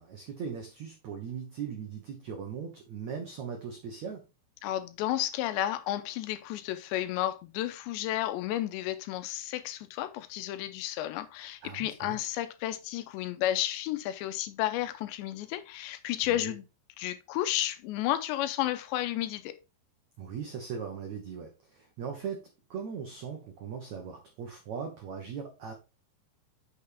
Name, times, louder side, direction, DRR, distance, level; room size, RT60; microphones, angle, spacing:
voice 1, 0.0-4.2 11.6-12.2 16.2-16.6 20.2-22.4 22.7-25.7, right 6 dB, 85° right, 1.6 m, -39 dB
voice 2, 4.6-16.6 17.0-19.5, left 13 dB, 85° left, 2.9 m, -32 dB
8.7 x 6.4 x 3.5 m
omnidirectional pair, 5.3 m